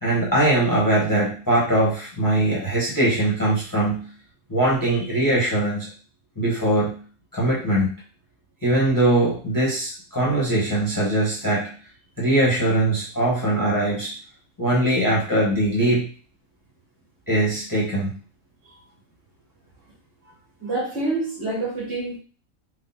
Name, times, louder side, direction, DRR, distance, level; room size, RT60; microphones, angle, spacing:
voice 1, 0.0-4.1 4.5-5.9 6.4-7.0 7.3-7.9 8.6-11.7 12.2-14.1 14.6-16.1 17.3-18.1, right 1 dB, 15° left, -5 dB, 1.2 m, -21 dB
voice 2, 20.6-22.2, right 2 dB, 45° right, -5 dB, 2.0 m, -27 dB
4.0 x 2.5 x 4.2 m, 0.39 s
omnidirectional pair, 1.4 m